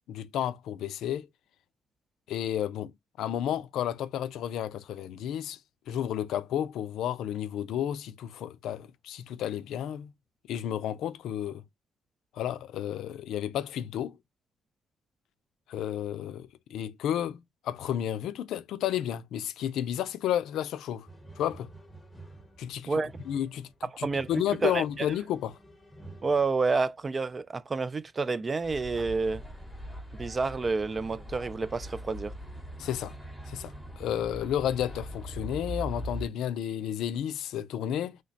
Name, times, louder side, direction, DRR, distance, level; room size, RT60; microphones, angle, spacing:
voice 1, 0.1-1.3 2.3-2.9 3.2-5.6 5.9-10.1 10.5-11.6 12.3-14.2 15.7-21.1 21.4-21.7 22.6-22.9 23.3-25.6 32.8-33.2 33.5-38.2, left 10 dB, 80° left, 0.4 m, -32 dB
sound 1, 21.1-27.1 28.3-28.4 29.2-29.9, right 2 dB, 10° left, 1.0 m, -51 dB
voice 2, 24.0-24.8 26.2-29.4 30.1-32.3, right 4 dB, 30° right, 0.3 m, -29 dB
sound 2, 28.6-36.3, equal, 10° right, 1.0 m, -41 dB
3.2 x 2.1 x 3.8 m
cardioid pair, 90°, 0 cm